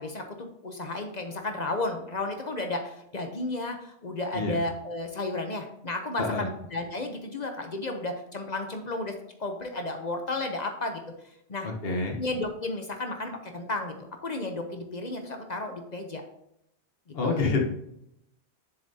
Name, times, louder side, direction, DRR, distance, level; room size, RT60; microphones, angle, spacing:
voice 1, 0.0-9.1 9.4-11.0 11.5-11.7 12.2-13.9 14.2-16.2 17.2-17.6, left 2 dB, 45° left, 5 dB, 0.8 m, -33 dB
voice 2, 11.6-12.2 17.1-17.7, left 3 dB, 60° left, 2 dB, 1.4 m, -27 dB
7.1 x 7.0 x 2.8 m, 0.76 s
omnidirectional pair, 1.1 m